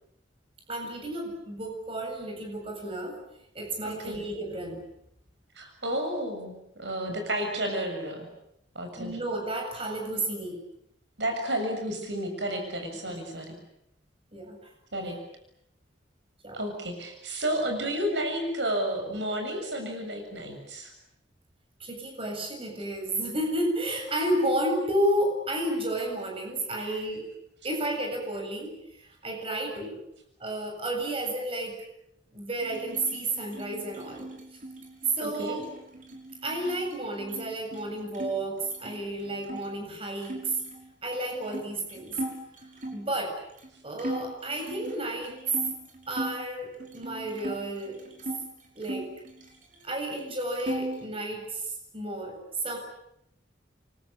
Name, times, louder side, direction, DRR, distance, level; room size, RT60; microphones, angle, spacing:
voice 1, 0.7-3.2 3.5-4.8 9.0-10.6 13.0-13.2 14.3-14.6 16.4-16.6 21.8-27.3 27.6-30.0 30.4-31.8 32.3-34.3 35.1-35.7 36.4-40.5 41.0-42.1 42.9-43.4 43.8-45.4 46.1-48.0 48.8-49.1 49.8-52.4 52.6-52.8, right 1 dB, 30° right, 2 dB, 7.8 m, -32 dB
voice 2, 3.8-4.2 5.6-8.3 8.8-9.1 11.2-13.6 14.9-15.2 16.5-20.9 26.8-26.9 35.2-35.6, right 1 dB, 75° right, 5 dB, 7.1 m, -31 dB
sound 1, 32.6-38.3 38.6-39.7 40.2-43.1 43.6-43.7 44.0-46.4 46.8-48.4 48.8-49.9 50.2-51.1, right 1 dB, 45° right, 5.9 m, -39 dB
28.0 x 24.0 x 8.6 m, 0.78 s
head